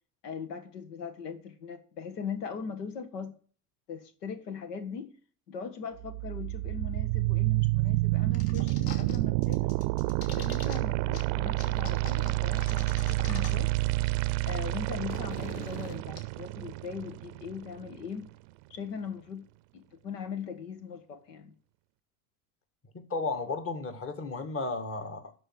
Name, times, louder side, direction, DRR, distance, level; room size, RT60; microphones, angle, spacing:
voice 1, 0.2-3.4 3.9-5.1 5.5-9.7 10.2-13.7 14.4-18.3 18.7-19.5 19.7-21.5, left 6 dB, 85° left, 1.6 m, -40 dB
sound 1, 6.0-18.0, right 21 dB, 60° right, 0.6 m, -29 dB
sound 2, 8.3-9.2 9.4-10.8 11.1-11.2 11.6-13.8 14.0-14.1 14.3-16.2, left 5 dB, 50° left, 2.8 m, -44 dB
voice 2, 22.9-25.3, left 3 dB, 30° left, 2.1 m, -34 dB
12.0 x 4.5 x 7.6 m
hypercardioid pair, 90°, 46 cm